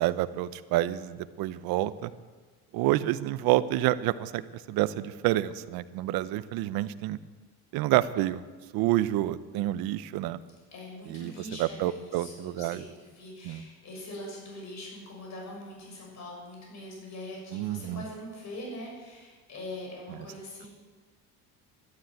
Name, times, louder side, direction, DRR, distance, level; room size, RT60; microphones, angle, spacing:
voice 1, 0.0-2.1 2.7-4.4 4.7-7.2 7.7-8.4 8.7-10.4 11.1-12.8 13.4-13.6 17.5-18.0 20.1-20.2, right 15 dB, 80° right, 15 dB, 0.8 m, -28 dB
voice 2, 10.7-20.7, left 1 dB, 50° left, -1 dB, 6.7 m, -42 dB
12.5 x 12.0 x 9.0 m, 1.4 s
cardioid pair, 115°, 35 cm